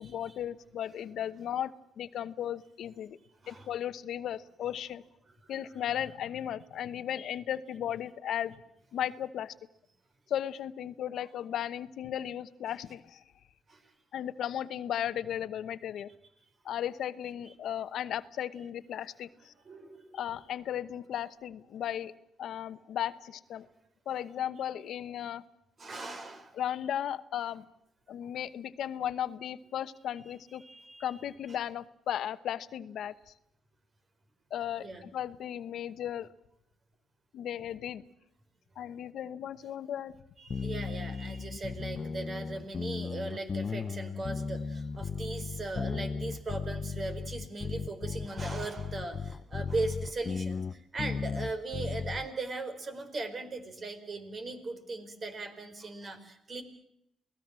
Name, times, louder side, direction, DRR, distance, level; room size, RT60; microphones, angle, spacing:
voice 1, 0.0-1.7 2.0-3.2 3.5-5.0 5.5-8.5 8.9-9.5 10.3-13.2 14.1-16.1 16.6-19.5 20.1-22.1 22.4-23.7 24.1-25.4 26.6-27.6 28.1-30.6 31.0-33.3 34.5-36.3 37.3-38.0 38.8-40.2, left 10 dB, 70° left, 14 dB, 1.0 m, -35 dB
voice 2, 19.6-20.2 25.8-26.6 30.2-31.2 34.8-35.0 40.4-56.6, right 3 dB, 40° right, 9 dB, 4.6 m, -39 dB
sound 1, 40.5-52.3, left 5 dB, 40° left, 0.8 m, -36 dB
28.5 x 18.5 x 7.5 m, 0.78 s
cardioid pair, 90°, 0 cm